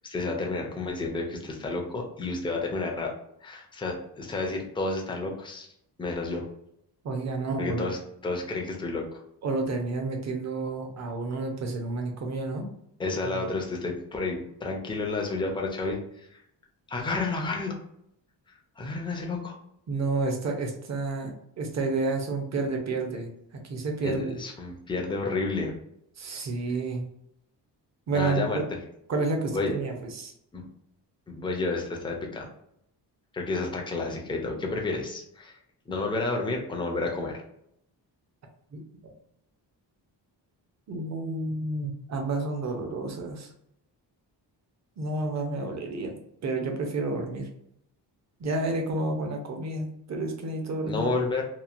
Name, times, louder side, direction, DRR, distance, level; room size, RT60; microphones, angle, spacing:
voice 1, 0.0-3.1 3.4-5.7 6.0-6.5 7.6-9.2 13.0-16.4 16.9-17.8 18.8-19.5 24.0-25.7 28.1-28.6 29.5-29.7 30.5-30.6 31.3-32.5 33.3-35.6 35.9-37.4 50.8-51.4, left 3 dB, 10° left, 1 dB, 0.4 m, -31 dB
voice 2, 7.0-7.9 9.4-12.6 13.2-13.5 19.9-24.4 26.2-27.0 28.1-28.6 29.1-30.3 38.7-39.1 40.9-43.5 45.0-46.2 46.4-47.5 48.4-51.1, right 3 dB, 40° right, 3 dB, 0.6 m, -30 dB
3.0 x 2.4 x 2.4 m, 0.75 s
wide cardioid pair, 175°, 43 cm